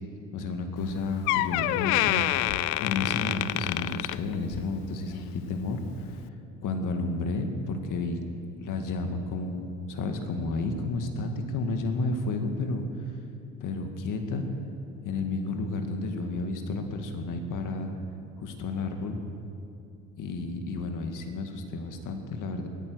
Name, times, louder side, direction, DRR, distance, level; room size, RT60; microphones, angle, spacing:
voice 1, 0.3-2.2 2.8-5.8 6.6-8.2 8.6-12.8 13.6-14.5 15.0-17.9 18.4-19.2 20.2-22.7, left 3 dB, 55° left, 5 dB, 2.0 m, -31 dB
Door, 0.8-0.9 1.3-4.8 5.1-5.4 6.1-6.2, left 17 dB, 75° left, 0.5 m, -27 dB
21.0 x 9.3 x 6.3 m, 2.6 s
supercardioid pair, 80°, 36 cm